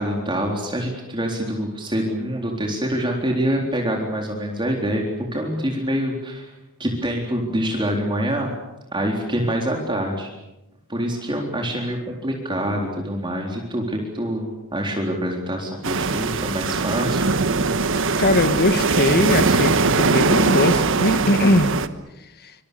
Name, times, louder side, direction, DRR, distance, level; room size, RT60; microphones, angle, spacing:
voice 1, 0.0-5.0 5.3-6.5 6.8-8.5 8.9-10.3 10.9-17.3, equal, 20° right, 0 dB, 3.9 m, -25 dB
sound 1, 15.8-21.9, right 4 dB, 60° right, 1.4 m, -21 dB
voice 2, 18.2-21.7, left 1 dB, 45° left, 11 dB, 1.6 m, -20 dB
26.5 x 26.0 x 7.1 m, 0.98 s
head